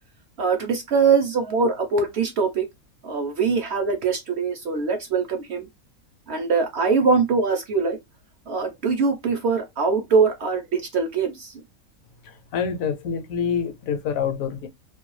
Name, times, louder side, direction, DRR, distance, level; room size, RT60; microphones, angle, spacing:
voice 1, 0.4-2.6 3.0-5.7 6.3-8.0 8.5-11.5, right 5 dB, 60° right, 0.8 m, -22 dB
voice 2, 12.5-14.7, left 7 dB, 75° left, 1.0 m, -26 dB
2.5 x 2.2 x 3.0 m
omnidirectional pair, 1.5 m